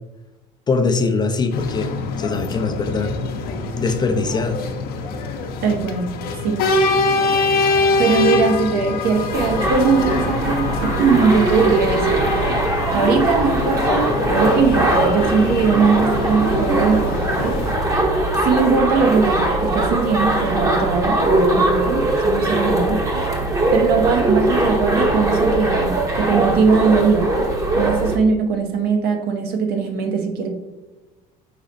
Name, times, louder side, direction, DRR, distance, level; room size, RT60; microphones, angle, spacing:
voice 1, 0.7-3.1 3.8-4.6, left 4 dB, 25° left, 6 dB, 0.4 m, -22 dB
sound 1, 1.5-17.8, left 3 dB, 60° left, 0.7 m, -24 dB
voice 2, 5.6-6.1 6.4-6.8 8.0-12.2 12.9-17.6 18.4-23.0 23.7-27.3 27.8-30.5, right 5 dB, 65° right, 4 dB, 0.9 m, -20 dB
sound 2, 9.3-28.2, right 2 dB, 20° right, 0.9 m, -20 dB
5.0 x 4.1 x 2.6 m, 1.1 s
supercardioid pair, 100°, 18 cm